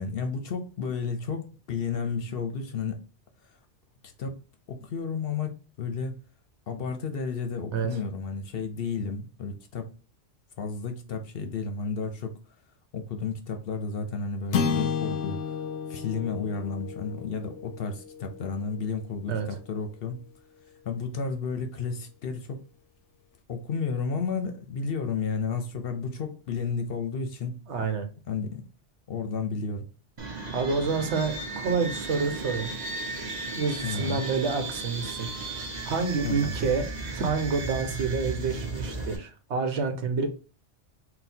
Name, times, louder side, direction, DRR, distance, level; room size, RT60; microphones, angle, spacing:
voice 1, 0.0-3.0 4.2-4.3 4.7-6.1 6.7-9.9 10.6-12.4 12.9-15.4 15.9-20.2 20.8-22.6 23.5-27.6 28.3-28.6 29.1-29.9 33.8-34.2 36.2-36.6, left 5 dB, 60° left, 0.8 m, -32 dB
sound 1, 14.5-19.0, left 6 dB, 85° left, 0.9 m, -32 dB
voice 2, 27.7-28.0 30.5-32.7 33.5-36.9 37.1-40.3, right 4 dB, 75° right, 1.1 m, -28 dB
sound 2, 30.2-39.2, right 3 dB, 40° right, 0.9 m, -35 dB
3.9 x 2.2 x 4.2 m
omnidirectional pair, 1.2 m